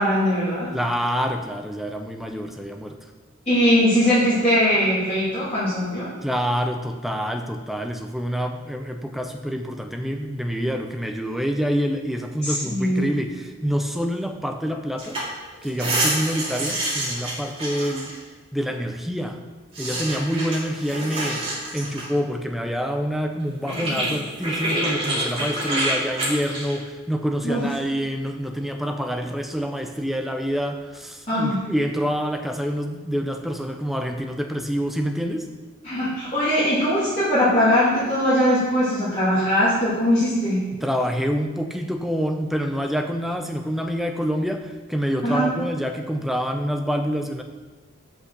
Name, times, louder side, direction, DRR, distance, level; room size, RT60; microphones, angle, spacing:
voice 1, 0.0-0.7 3.5-6.1 12.4-13.1 27.4-27.6 31.3-31.6 35.8-40.7 45.2-45.5, equal, 30° left, -13 dB, 2.6 m, -20 dB
voice 2, 0.7-3.0 6.2-15.2 15.6-18.1 18.5-19.4 19.8-21.5 21.7-35.5 40.8-47.4, equal, ahead, 5 dB, 0.5 m, -27 dB
sound 1, 15.0-15.2 15.5-18.2 19.7-22.1 23.4-23.5 23.7-26.8, right 1 dB, 25° right, 2.2 m, -27 dB
6.0 x 5.6 x 6.5 m, 1.3 s
head